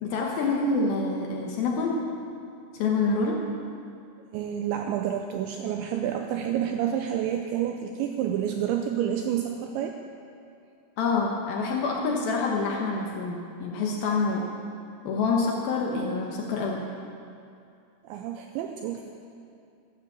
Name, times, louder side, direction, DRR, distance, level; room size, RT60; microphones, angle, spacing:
voice 1, 0.0-2.1 2.7-3.5 11.0-14.5 15.0-16.8, left 3 dB, 75° left, -1 dB, 2.2 m, -27 dB
voice 2, 4.3-10.0 18.0-19.1, right 10 dB, 85° right, 4 dB, 2.6 m, -29 dB
13.5 x 11.5 x 7.4 m, 2.5 s
omnidirectional pair, 5.8 m